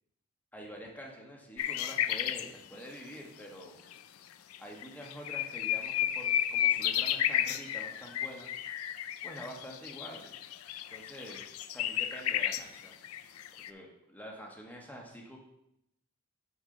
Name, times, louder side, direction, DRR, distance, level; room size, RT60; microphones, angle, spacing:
voice 1, 0.5-3.8 4.6-8.5 9.2-10.2 10.9-13.0 13.6-15.4, equal, 10° left, 0 dB, 1.2 m, -47 dB
sound 1, 1.6-2.5 3.9-4.0 4.5-4.6 4.8-13.7, left 11 dB, 85° left, 0.4 m, -32 dB
7.1 x 6.6 x 3.8 m, 0.83 s
head